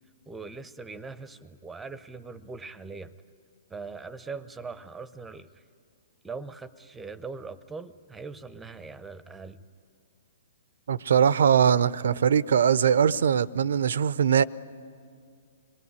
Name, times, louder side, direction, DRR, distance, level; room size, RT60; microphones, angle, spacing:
voice 1, 0.3-3.2 3.7-5.6 6.2-9.6, right 4 dB, 10° right, 0.8 m, -41 dB
voice 2, 10.9-14.4, right 7 dB, 70° right, 0.6 m, -21 dB
26.0 x 21.0 x 9.6 m
hypercardioid pair, 125°, 0 cm